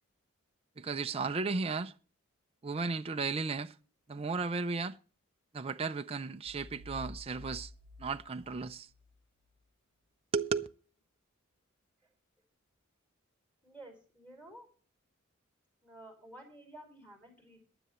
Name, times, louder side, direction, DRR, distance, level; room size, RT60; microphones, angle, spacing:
voice 1, 0.8-1.9 2.6-3.7 4.1-5.0 5.5-7.7 8.0-8.9 10.3-10.7, right 4 dB, 30° right, 0.5 m, -34 dB
sound 1, 6.5-9.1, left 1 dB, 65° left, 6.6 m, -50 dB
voice 2, 13.6-14.7 15.8-17.6, right 1 dB, 10° left, 5.0 m, -52 dB
22.0 x 7.9 x 3.1 m
head